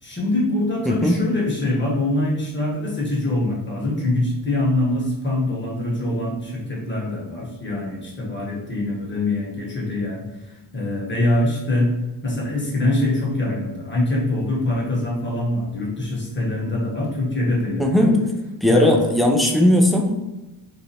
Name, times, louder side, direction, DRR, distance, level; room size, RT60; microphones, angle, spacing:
voice 1, 0.0-10.3 10.7-11.9 12.2-18.2 18.7-19.0, left 1 dB, 25° left, -3 dB, 1.2 m, -24 dB
voice 2, 17.8-18.1 18.6-20.1, left 1 dB, ahead, 2 dB, 0.3 m, -17 dB
3.2 x 2.4 x 2.8 m, 1.0 s
supercardioid pair, 70°, 47 cm